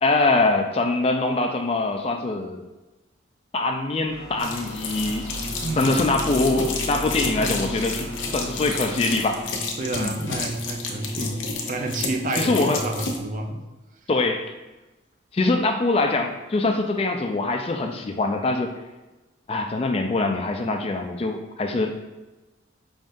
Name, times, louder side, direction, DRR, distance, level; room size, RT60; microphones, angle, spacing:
voice 1, 0.0-2.7 3.5-5.3 5.8-9.4 9.9-10.1 11.2-11.3 12.4-12.8 14.1-14.5 15.3-18.7 19.5-21.9, left 2 dB, 30° left, 5 dB, 0.3 m, -23 dB
sound 1, 4.0-9.7, equal, 60° right, 0.9 m, -37 dB
sound 2, 4.4-13.2, left 4 dB, 85° left, 0.7 m, -31 dB
Brass instrument, 5.3-12.4, right 1 dB, 85° right, 1.2 m, -38 dB
voice 2, 5.6-6.1 7.4-7.6 9.8-13.7, right 2 dB, 40° right, 3 dB, 0.4 m, -30 dB
5.1 x 3.7 x 2.6 m, 1.1 s
head